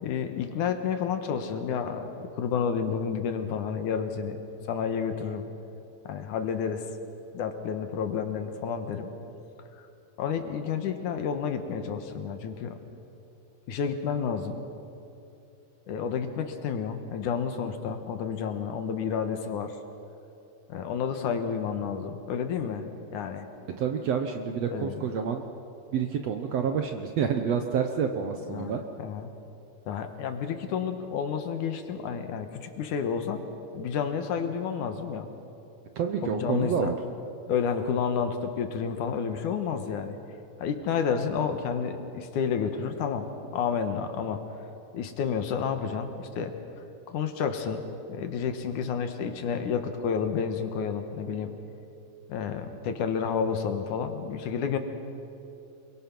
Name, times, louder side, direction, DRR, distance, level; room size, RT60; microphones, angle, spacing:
voice 1, 0.0-4.4 4.7-5.5 6.0-6.9 7.3-9.1 10.2-12.8 13.7-14.6 15.9-19.8 20.7-22.9 23.1-23.5 24.7-25.1 28.5-29.3 29.9-33.4 33.7-35.3 36.2-36.9 37.5-40.2 40.6-44.4 44.9-46.5 47.1-51.5 52.3-54.8, left 6 dB, 70° left, 7 dB, 2.7 m, -30 dB
voice 2, 23.8-25.4 25.9-28.8 36.0-37.0, right 7 dB, 65° right, 5 dB, 1.7 m, -28 dB
28.0 x 22.5 x 6.0 m, 2.8 s
omnidirectional pair, 3.9 m